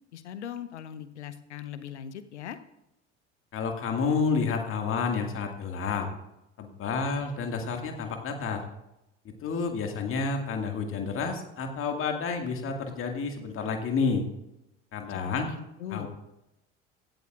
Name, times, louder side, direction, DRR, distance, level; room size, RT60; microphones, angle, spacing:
voice 1, 0.1-2.6 15.1-16.1, left 9 dB, 70° left, 13 dB, 0.9 m, -40 dB
voice 2, 3.5-6.1 6.6-8.6 9.4-14.2 14.9-15.5 15.9-16.1, left 5 dB, 35° left, 4 dB, 2.0 m, -30 dB
16.5 x 13.0 x 2.5 m, 0.88 s
figure-of-eight pair, 65°, 36 cm